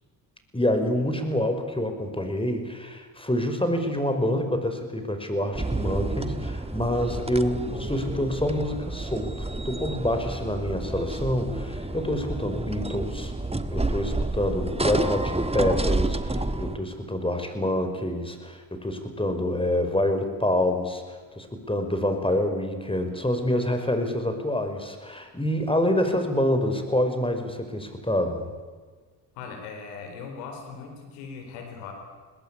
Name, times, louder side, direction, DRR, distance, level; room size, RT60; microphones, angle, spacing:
voice 1, 0.5-13.3 13.7-28.5, left 1 dB, 10° left, 7 dB, 5.5 m, -27 dB
sound 1, 5.5-16.8, right 2 dB, 10° right, 1.6 m, -30 dB
voice 2, 29.3-31.9, left 5 dB, 90° left, 4 dB, 4.6 m, -39 dB
21.5 x 20.0 x 8.6 m, 1.5 s
hypercardioid pair, 50°, 50 cm